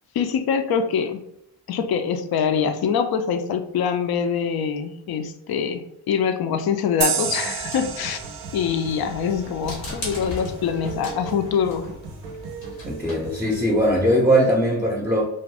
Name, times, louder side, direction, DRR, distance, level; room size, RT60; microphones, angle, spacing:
voice 1, 0.1-1.2 1.7-8.2 8.5-11.9, left 7 dB, 50° left, 8 dB, 0.5 m, -24 dB
sound 1, 7.0-10.3, right 8 dB, 45° right, 0.5 m, -30 dB
sound 2, 7.2-13.6, right 3 dB, 85° right, 0.7 m, -39 dB
sound 3, 7.5-14.0, left 2 dB, 90° left, 1.0 m, -39 dB
voice 2, 12.9-15.2, equal, 5° right, -2 dB, 0.6 m, -20 dB
2.5 x 2.3 x 3.3 m, 0.78 s
supercardioid pair, 40°, 48 cm